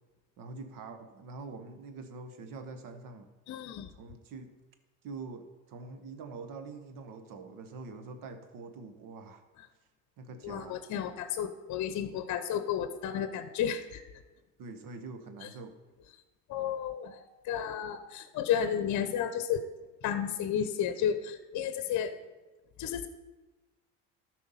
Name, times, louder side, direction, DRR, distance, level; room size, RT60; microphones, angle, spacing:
voice 1, 0.4-3.3 3.9-4.5 5.0-9.4 10.2-10.8 14.6-15.8, right 4 dB, 60° right, 8 dB, 1.3 m, -45 dB
voice 2, 3.5-3.9 10.4-14.0 15.4-15.5 16.5-19.7 20.0-22.1 22.8-23.1, left 9 dB, 50° left, 11 dB, 0.8 m, -32 dB
12.5 x 4.9 x 5.6 m, 1.2 s
hypercardioid pair, 70°, 37 cm